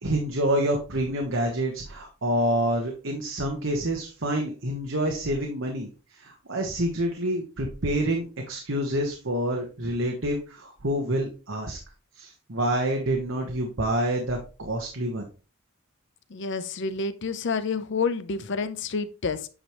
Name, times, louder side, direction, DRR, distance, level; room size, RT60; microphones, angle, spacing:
voice 1, 0.0-11.8 12.1-15.3, right 1 dB, 60° right, 1.2 m, -27 dB
voice 2, 16.3-19.5, left 4 dB, 55° left, 0.6 m, -29 dB
8.7 x 5.0 x 3.0 m
head